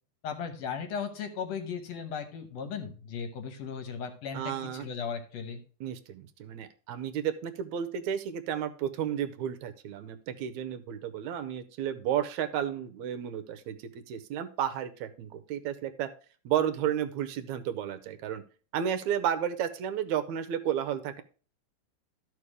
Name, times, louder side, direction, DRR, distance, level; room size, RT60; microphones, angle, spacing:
voice 1, 0.2-5.6, left 6 dB, 65° left, 7 dB, 2.0 m, -36 dB
voice 2, 4.3-4.9 5.8-16.1 16.5-18.4 18.7-21.2, right 9 dB, 80° right, 9 dB, 2.0 m, -32 dB
13.0 x 4.7 x 4.8 m, 0.39 s
omnidirectional pair, 3.4 m